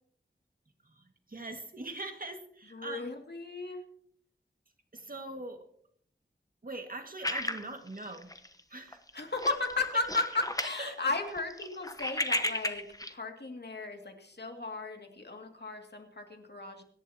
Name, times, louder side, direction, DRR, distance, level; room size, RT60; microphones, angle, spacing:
voice 1, 0.8-3.0 4.9-5.7 6.6-8.3 8.7-9.0 10.8-10.9, right 2 dB, 45° right, 5 dB, 2.0 m, -42 dB
voice 2, 2.7-3.8 9.1-12.8 13.1-16.8, left 3 dB, 60° left, 3 dB, 2.4 m, -35 dB
sound 1, 7.2-8.6 8.9-9.1 9.4-10.8 11.1-13.1, left 1 dB, 20° left, 1.1 m, -34 dB
25.0 x 11.0 x 2.9 m, 0.63 s
wide cardioid pair, 65°, 20 cm